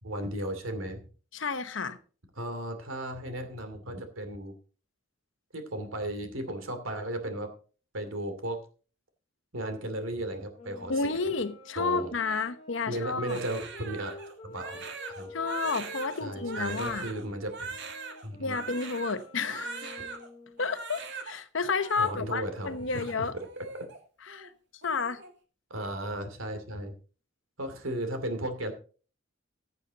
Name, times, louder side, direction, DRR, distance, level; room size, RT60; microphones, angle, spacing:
voice 1, 0.0-1.0 2.4-4.5 5.5-7.5 7.9-8.6 9.5-10.9 11.8-12.1 12.9-14.1 14.4-14.8 15.1-15.3 16.2-17.7 18.2-18.6 22.0-23.3 25.7-26.9 27.6-28.7, right 1 dB, 85° right, 2.6 m, -35 dB
voice 2, 1.3-2.0 10.9-13.4 15.3-17.1 18.4-20.0 20.6-23.3 24.2-24.5 24.8-25.2, left 4 dB, 70° left, 1.0 m, -31 dB
sound 1, 10.6-17.3 17.7-20.7, left 2 dB, 30° left, 2.3 m, -49 dB
Crying sobbing, 13.3-20.3 20.6-21.4 21.6-22.1 22.6-24.0 24.3-24.5 24.8-25.3, right 4 dB, 60° right, 2.2 m, -41 dB
15.0 x 8.2 x 4.0 m
head